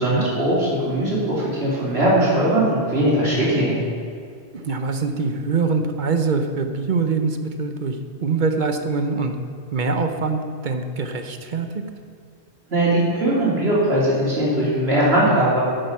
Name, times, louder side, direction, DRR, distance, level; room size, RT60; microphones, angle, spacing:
voice 1, 0.0-3.8 12.7-15.6, right 1 dB, 65° right, -7 dB, 3.3 m, -20 dB
voice 2, 4.5-9.3 9.7-11.8, right 4 dB, 50° right, 7 dB, 0.8 m, -24 dB
8.8 x 7.9 x 5.7 m, 2.3 s
omnidirectional pair, 1.1 m